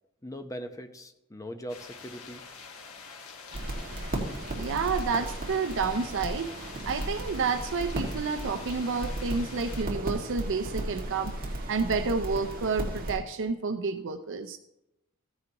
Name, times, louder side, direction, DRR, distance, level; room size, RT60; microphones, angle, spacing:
voice 1, 0.2-2.4, equal, 15° left, 0.8 m, -40 dB
sound 1, 1.7-9.8, left 5 dB, 70° left, 1.5 m, -46 dB
sound 2, 3.5-13.2, right 1 dB, 40° right, 1.9 m, -35 dB
voice 2, 4.6-11.4 11.7-14.6, right 4 dB, 60° right, 0.5 m, -30 dB
14.5 x 9.7 x 2.9 m
head